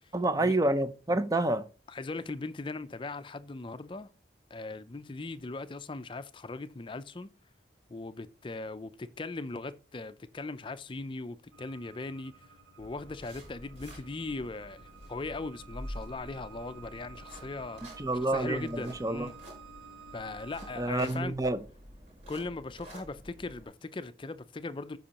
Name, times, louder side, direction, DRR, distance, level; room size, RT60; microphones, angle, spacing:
voice 1, 0.1-1.6 18.0-19.3 20.8-21.6, right 2 dB, 20° right, 0.6 m, -28 dB
voice 2, 1.9-4.1 4.5-7.3 7.9-12.5 12.8-19.3 20.1-21.4 22.3-25.0, left 3 dB, 25° left, 0.4 m, -39 dB
sound 1, 11.5-20.9, right 5 dB, 80° right, 1.4 m, -53 dB
sound 2, 12.8-23.6, equal, 35° right, 5.2 m, -48 dB
13.5 x 5.4 x 2.9 m
head